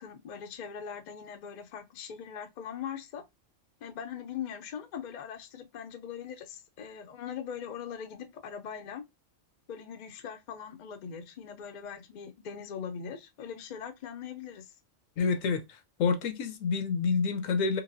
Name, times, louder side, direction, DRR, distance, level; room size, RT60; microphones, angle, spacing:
voice 1, 0.0-3.2 3.8-9.0 9.7-14.7, left 7 dB, 60° left, 0.5 m, -41 dB
voice 2, 15.2-17.8, left 5 dB, 80° left, 1.0 m, -28 dB
3.1 x 2.9 x 2.5 m
omnidirectional pair, 1.3 m